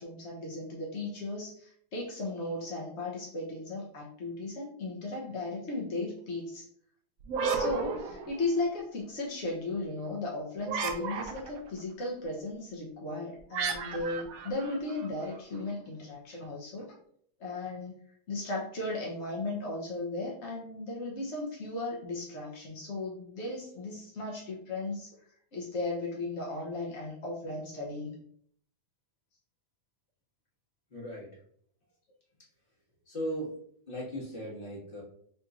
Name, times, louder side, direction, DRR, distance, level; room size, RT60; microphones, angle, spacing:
voice 1, 0.0-6.6 7.5-16.9 17.4-18.0 18.3-25.1 25.5-28.1, left 2 dB, 65° left, -2 dB, 0.7 m, -36 dB
sound 1, 7.2-8.8 10.6-11.7 13.5-15.4, right 5 dB, 80° right, 0.8 m, -34 dB
voice 2, 30.9-31.3 33.1-33.5 33.9-35.0, equal, 30° left, -5 dB, 1.5 m, -37 dB
5.0 x 3.0 x 2.4 m, 0.63 s
omnidirectional pair, 2.2 m